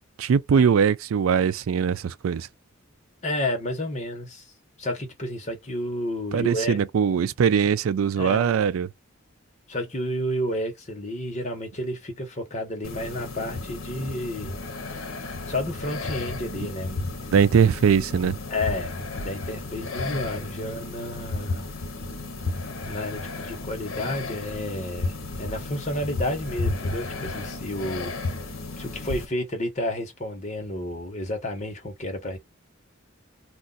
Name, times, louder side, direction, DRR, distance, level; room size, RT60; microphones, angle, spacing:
voice 1, 0.2-2.5 6.3-8.9 17.3-18.4, right 7 dB, 90° right, 0.4 m, -21 dB
voice 2, 3.2-4.5 4.8-6.8 8.2-8.6 9.7-14.5 15.4-17.1 18.5-18.9 19.2-21.7 22.8-28.1 28.8-32.4, left 1 dB, 35° left, 1.2 m, -31 dB
sound 1, 12.8-29.3, left 2 dB, 90° left, 0.9 m, -33 dB
2.5 x 2.4 x 3.9 m
head